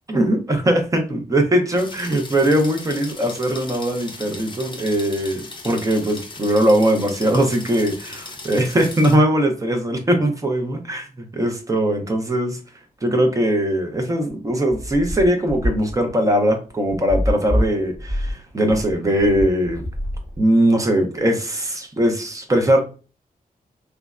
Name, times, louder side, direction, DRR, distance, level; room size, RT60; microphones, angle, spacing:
voice 1, 0.1-12.6 13.0-19.8 20.4-22.8, right 1 dB, 20° right, 4 dB, 0.5 m, -20 dB
sound 1, 1.8-9.2, left 3 dB, 30° left, 0.5 m, -38 dB
sound 2, 14.7-20.7, equal, 40° right, 1.2 m, -26 dB
3.2 x 2.0 x 2.4 m, 0.35 s
wide cardioid pair, 155°, 15 cm